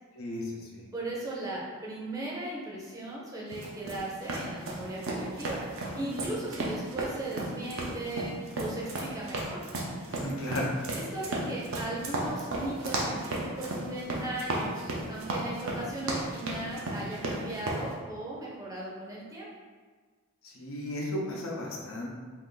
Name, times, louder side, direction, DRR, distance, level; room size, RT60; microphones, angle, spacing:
voice 1, 0.1-0.8 6.0-6.4 10.1-10.7 20.5-22.1, left 1 dB, 80° left, -2 dB, 0.7 m, -35 dB
voice 2, 0.9-5.6 5.9-8.3 8.6-9.6 10.9-19.5, right 2 dB, 15° right, -5 dB, 0.6 m, -37 dB
sound 1, 3.5-17.8, right 1 dB, 75° right, 0.6 m, -34 dB
2.7 x 2.5 x 3.6 m, 1.5 s
head